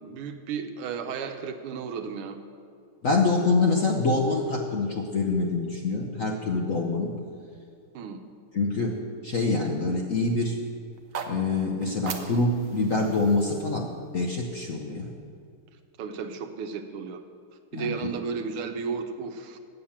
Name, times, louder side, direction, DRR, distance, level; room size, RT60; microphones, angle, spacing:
voice 1, 0.0-2.4 7.9-8.2 16.0-17.2 17.7-19.6, right 6 dB, 85° right, 7 dB, 1.7 m, -33 dB
voice 2, 3.0-7.1 8.5-8.9 9.2-10.6 11.3-13.9 14.1-15.1 17.7-18.1, left 3 dB, 60° left, 1 dB, 0.9 m, -25 dB
sound 1, 10.9-15.1, right 5 dB, 65° right, 0.8 m, -41 dB
8.7 x 8.5 x 7.2 m, 2.4 s
omnidirectional pair, 2.4 m